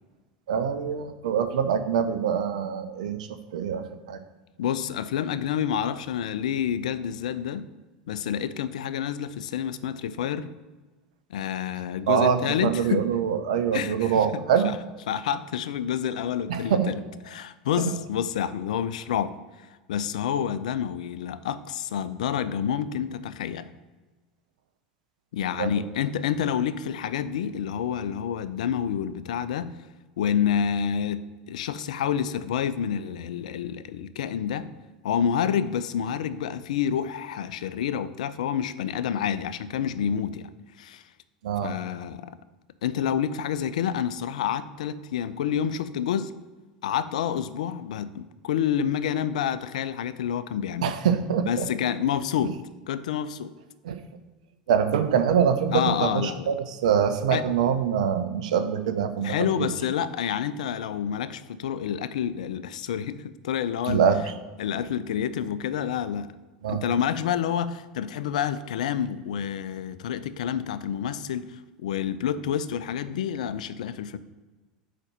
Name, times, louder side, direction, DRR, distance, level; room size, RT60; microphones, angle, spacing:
voice 1, 0.5-4.2 12.1-14.7 16.5-17.0 17.8-18.0 25.6-25.7 41.4-41.7 50.8-51.7 53.8-54.0 54.7-59.7 63.8-64.2 66.6-66.8, right 7 dB, 70° right, 9 dB, 0.6 m, -24 dB
voice 2, 4.6-7.6 8.1-10.5 11.3-13.1 13.7-14.2 14.6-14.7 15.1-19.4 19.9-23.7 25.3-29.7 30.2-31.2 31.5-34.7 35.0-40.5 40.8-41.0 41.6-42.4 42.8-46.3 46.8-50.9 51.5-52.6 52.9-53.5 55.7-56.5 57.3-57.4 59.2-64.0 64.6-66.3 66.7-74.2, left 8 dB, 70° left, 14 dB, 0.4 m, -28 dB
5.0 x 4.1 x 5.9 m, 1.2 s
hypercardioid pair, 80°, 4 cm